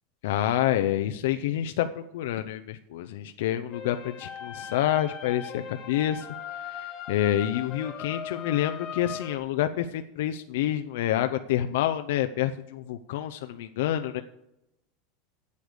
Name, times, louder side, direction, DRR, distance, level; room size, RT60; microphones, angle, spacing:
voice 1, 0.2-6.3 6.5-14.2, left 12 dB, 70° left, 8 dB, 0.5 m, -28 dB
sound 1, 3.7-9.4, left 8 dB, 25° left, 1.2 m, -39 dB
8.3 x 7.9 x 6.7 m, 0.85 s
supercardioid pair, 180°, 0 cm